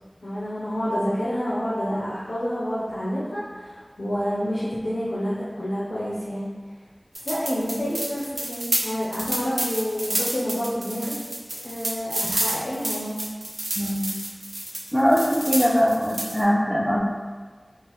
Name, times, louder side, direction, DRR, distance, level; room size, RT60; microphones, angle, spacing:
voice 1, 0.2-6.5 7.2-11.1 11.6-13.2, equal, 90° left, -9 dB, 0.6 m, -28 dB
sound 1, 7.1-16.4, right 1 dB, 65° right, 0.5 m, -30 dB
voice 2, 13.8-14.1 14.9-17.0, equal, ahead, -4 dB, 0.6 m, -21 dB
3.7 x 2.5 x 2.9 m, 1.5 s
wide cardioid pair, 50°, 0 cm